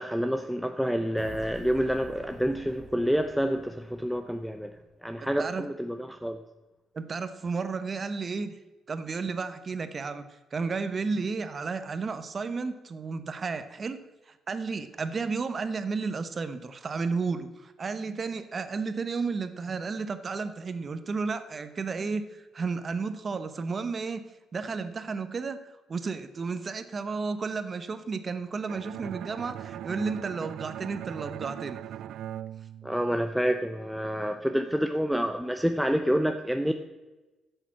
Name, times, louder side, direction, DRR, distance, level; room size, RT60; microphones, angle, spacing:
voice 1, 0.0-6.4 32.8-36.7, equal, ahead, 6 dB, 0.7 m, -28 dB
sound 1, 1.2-4.8, left 1 dB, 40° left, 3.6 m, -48 dB
voice 2, 6.9-8.5 8.9-10.2 10.5-14.0 14.3-24.2 24.5-25.6 25.9-31.8, right 4 dB, 40° right, 11 dB, 1.1 m, -32 dB
Bowed string instrument, 28.7-33.6, right 11 dB, 80° right, 0.3 m, -40 dB
10.0 x 6.9 x 7.4 m, 1.1 s
cardioid pair, 90°, 0 cm